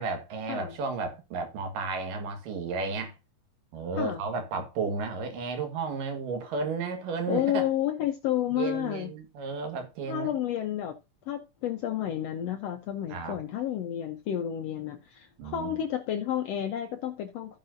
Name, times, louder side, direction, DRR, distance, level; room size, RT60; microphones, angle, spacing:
voice 1, 0.0-3.2 3.7-7.7 8.5-10.3 13.1-13.4 15.4-15.8, right 4 dB, 80° right, 3.2 m, -33 dB
voice 2, 7.3-9.1 10.1-10.9 11.3-17.6, left 11 dB, 85° left, 1.4 m, -31 dB
15.0 x 5.7 x 2.6 m
omnidirectional pair, 3.8 m